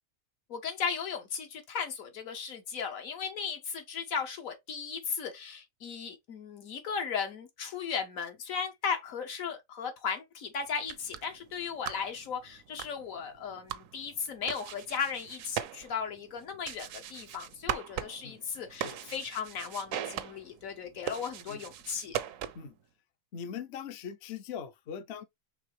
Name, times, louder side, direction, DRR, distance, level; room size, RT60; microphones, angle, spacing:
voice 1, 0.5-22.2, left 6 dB, 80° left, 1.5 m, -36 dB
sound 1, 10.7-22.8, right 10 dB, 75° right, 1.0 m, -41 dB
voice 2, 23.3-25.2, left 7 dB, 60° left, 0.8 m, -41 dB
4.7 x 3.2 x 3.2 m
omnidirectional pair, 1.4 m